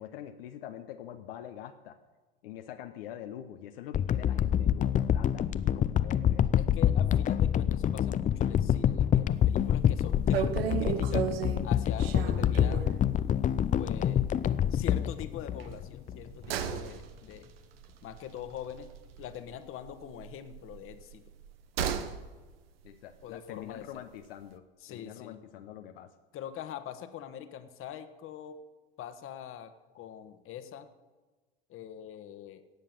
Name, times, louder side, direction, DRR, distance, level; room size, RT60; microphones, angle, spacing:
voice 1, 0.0-2.0 2.4-6.6 22.8-26.1, left 10 dB, 75° left, 6 dB, 0.9 m, -45 dB
sound 1, 3.9-16.2 16.7-16.8, left 9 dB, 25° left, 0.5 m, -27 dB
voice 2, 6.5-10.5 10.8-11.3 11.6-13.0 13.8-14.2 14.7-17.5 18.0-18.9 19.2-21.2 23.2-24.0 24.8-25.4 26.3-28.6 29.0-30.9 31.7-32.6, left 10 dB, 45° left, 10 dB, 1.4 m, -43 dB
sound 2, 9.4-9.7 10.0-10.1 10.3-13.0 13.4-13.6 13.8-13.9 15.6-19.5 19.8-22.2 22.5-22.6, right 9 dB, 80° right, 1.2 m, -35 dB
17.5 x 6.6 x 7.5 m, 1.3 s
hypercardioid pair, 85°, 29 cm